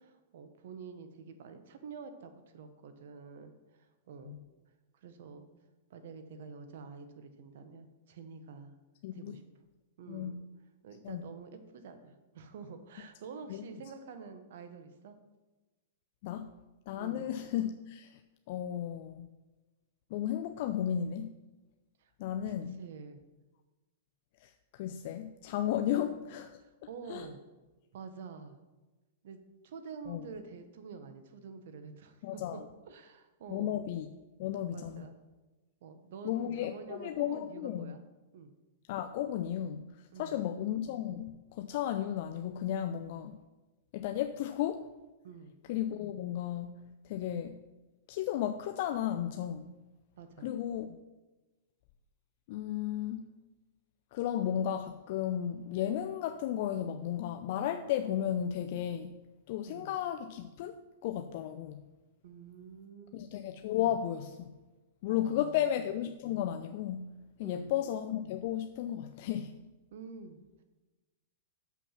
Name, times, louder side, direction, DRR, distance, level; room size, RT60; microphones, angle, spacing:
voice 1, 0.0-4.4 4.9-5.5 5.9-8.7 9.1-9.4 10.0-10.4 10.8-15.2 17.0-17.3 22.0-22.1 22.4-23.2 25.9-26.1 26.6-27.4 27.9-28.6 29.2-33.8 34.7-35.1 35.8-38.0 38.3-38.5 40.1-40.4 45.2-45.5 50.2-50.5 59.7-59.9 62.2-63.3 65.1-65.7 67.4-67.7 69.9-70.4, right 5 dB, 70° right, 9 dB, 1.1 m, -48 dB
voice 2, 9.0-9.4 10.1-10.3 11.0-11.2 13.5-13.6 16.2-16.5 16.9-18.2 18.5-19.3 20.1-21.3 22.2-22.8 24.4-26.5 27.1-27.3 30.1-30.3 32.2-32.6 33.5-34.1 34.4-35.0 36.2-37.9 38.9-39.8 40.2-43.4 43.9-44.9 45.7-46.8 47.0-47.6 48.1-49.7 50.4-51.0 52.5-53.2 54.1-59.1 59.5-61.8 63.1-64.5 65.0-67.1 67.4-69.5, left 10 dB, 55° left, 7 dB, 0.4 m, -34 dB
6.9 x 5.8 x 5.8 m, 1.1 s
hypercardioid pair, 135°, 0 cm